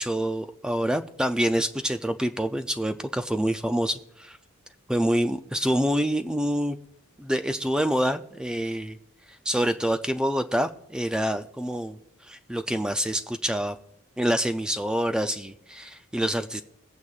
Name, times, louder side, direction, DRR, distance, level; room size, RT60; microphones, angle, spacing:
voice 1, 0.0-4.4 4.9-6.8 7.2-9.0 9.3-12.0 12.2-13.8 14.2-16.6, equal, 5° right, 8 dB, 0.3 m, -26 dB
22.0 x 8.5 x 2.4 m, 0.80 s
head